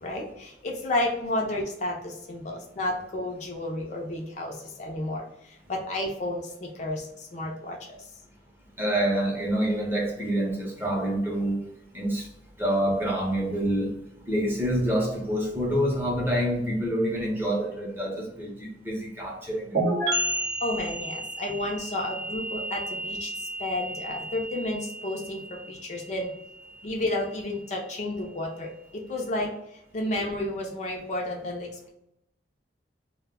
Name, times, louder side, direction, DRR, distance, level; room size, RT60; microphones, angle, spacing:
voice 1, 0.0-8.1 20.6-26.3 26.8-31.9, left 1 dB, 40° left, 0 dB, 0.4 m, -32 dB
voice 2, 8.8-11.6 11.9-12.3 12.6-13.9 14.3-19.8, equal, 10° right, -2 dB, 0.6 m, -27 dB
sound 1, 19.7-27.3, right 1 dB, 60° right, 0.8 m, -32 dB
2.2 x 2.1 x 3.4 m, 0.84 s
head